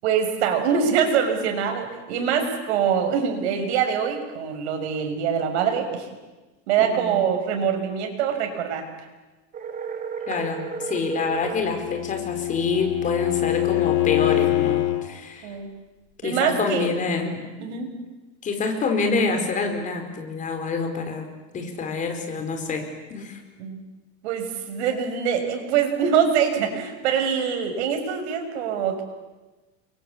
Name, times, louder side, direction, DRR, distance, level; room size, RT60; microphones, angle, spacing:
voice 1, 0.0-6.1 6.7-8.8 15.4-15.7 16.2-16.9 17.6-17.9 23.6-23.8 24.2-29.0, right 7 dB, 85° right, 5 dB, 6.6 m, -24 dB
voice 2, 6.8-7.2 10.3-15.5 16.2-17.4 18.4-21.3 21.5-22.8 23.1-23.4, left 4 dB, 25° left, 4 dB, 4.7 m, -27 dB
sound 1, 9.5-11.7, right 6 dB, 25° right, 2.9 m, -33 dB
Bowed string instrument, 11.4-15.1, left 16 dB, 65° left, 2.9 m, -24 dB
29.5 x 23.5 x 8.6 m, 1.2 s
supercardioid pair, 165°, 33 cm